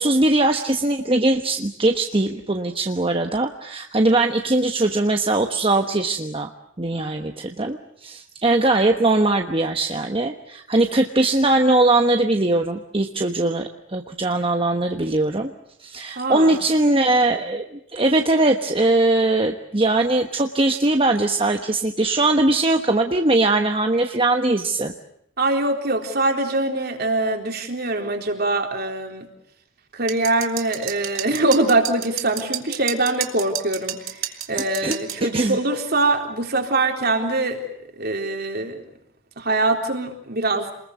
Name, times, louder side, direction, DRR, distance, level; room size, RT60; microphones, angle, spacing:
voice 1, 0.0-6.5 6.8-15.5 15.8-24.9 34.5-35.0 35.3-35.6, right 2 dB, 25° right, 5 dB, 1.2 m, -20 dB
voice 2, 16.2-16.6 25.4-29.3 29.9-37.6 38.0-38.8 39.4-40.7, right 2 dB, 50° right, 3 dB, 4.0 m, -23 dB
sound 1, 30.1-35.2, right 11 dB, 80° right, 2.2 m, -30 dB
28.0 x 21.0 x 8.2 m, 0.73 s
head